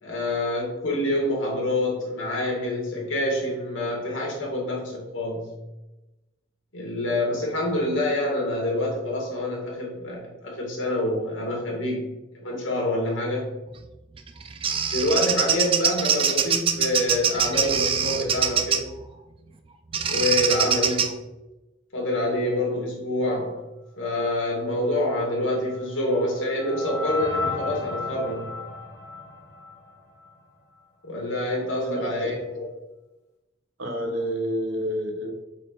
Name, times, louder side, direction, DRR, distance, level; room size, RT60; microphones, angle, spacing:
voice 1, 0.0-5.5 6.7-12.0 12.3-13.5 14.9-18.8 20.1-21.0 21.9-23.6 24.0-28.5 31.0-32.7, left 1 dB, 75° left, -2 dB, 2.2 m, -26 dB
Bird vocalization bird call bird song, 14.2-18.9 19.9-21.1, right 7 dB, 25° right, 0.3 m, -23 dB
sound 1, 25.2-30.4, left 3 dB, 55° left, 1.3 m, -34 dB
voice 2, 31.8-32.3 33.8-35.3, equal, 85° right, 3 dB, 1.2 m, -29 dB
7.6 x 4.3 x 3.2 m, 1.0 s
head